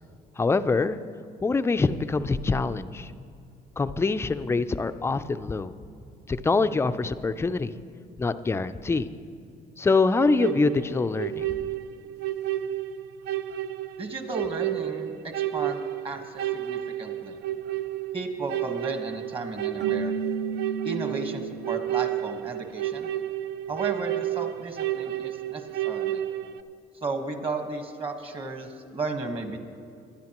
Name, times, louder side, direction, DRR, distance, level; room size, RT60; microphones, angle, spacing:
voice 1, 0.4-1.0 1.4-3.1 3.8-5.7 6.3-7.7 8.2-9.1 9.8-11.5, left 3 dB, 15° left, 11 dB, 0.4 m, -24 dB
sound 1, 10.1-26.6, right 13 dB, 75° right, 0.5 m, -31 dB
voice 2, 14.0-17.4 18.1-20.1 20.8-23.1 23.7-26.2 26.9-29.6, right 3 dB, 30° right, 5 dB, 1.4 m, -34 dB
Keyboard (musical), 19.8-21.8, right 4 dB, 50° right, 1.0 m, -33 dB
21.5 x 10.0 x 3.0 m, 2.5 s
cardioid pair, 110°, 17 cm